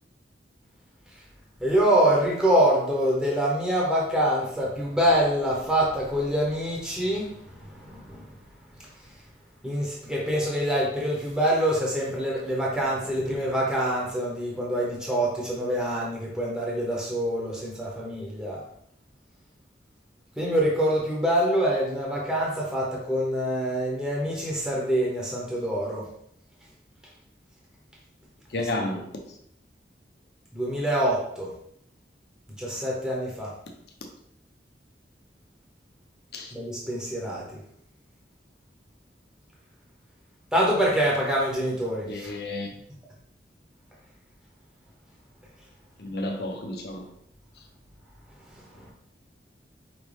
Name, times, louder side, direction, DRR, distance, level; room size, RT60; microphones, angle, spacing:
voice 1, 1.6-8.3 9.6-18.6 20.4-26.1 30.5-31.5 32.6-33.5 36.5-37.6 40.5-42.3 48.5-48.9, equal, 5° right, 0.9 m, -25 dB
voice 2, 28.5-29.1 36.3-36.5 42.1-42.7 46.0-47.0, left 2 dB, 65° left, 0.8 m, -31 dB
5.0 x 3.1 x 3.3 m
head